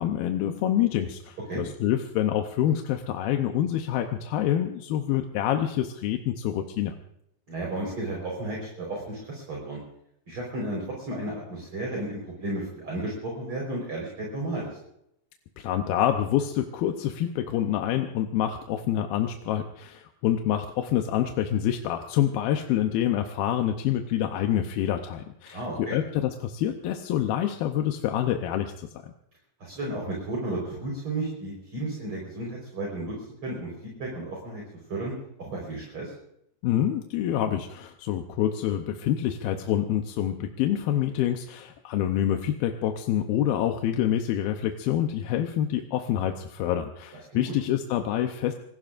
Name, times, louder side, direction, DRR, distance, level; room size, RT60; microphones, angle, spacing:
voice 1, 0.0-6.9 15.6-29.1 36.6-48.6, left 11 dB, 85° left, 5 dB, 2.7 m, -27 dB
voice 2, 7.5-9.8 10.3-14.8 25.5-26.0 29.6-33.1 33.4-33.7 34.0-34.6 34.9-35.1 35.4-36.1 47.3-47.5, right 2 dB, 35° right, -3 dB, 5.0 m, -33 dB
26.0 x 20.0 x 2.5 m, 0.78 s
omnidirectional pair, 4.2 m